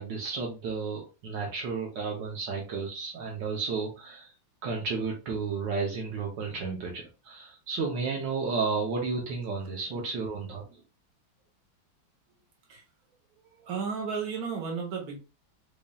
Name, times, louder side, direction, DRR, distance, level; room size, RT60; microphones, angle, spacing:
voice 1, 0.0-4.3 4.6-10.8, right 4 dB, 70° right, 1.5 m, -32 dB
voice 2, 13.5-15.2, right 5 dB, 55° right, 1.5 m, -33 dB
5.1 x 2.6 x 2.3 m
omnidirectional pair, 2.1 m